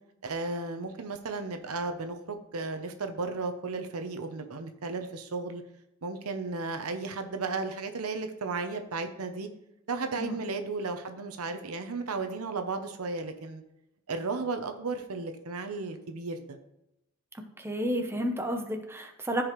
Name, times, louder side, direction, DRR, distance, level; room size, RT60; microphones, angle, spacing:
voice 1, 0.2-5.6 6.0-9.5 9.9-13.6 14.1-16.6, right 3 dB, 80° right, 7 dB, 0.8 m, -34 dB
voice 2, 17.6-19.4, equal, 10° right, 4 dB, 0.8 m, -31 dB
14.0 x 4.9 x 3.1 m, 0.84 s
head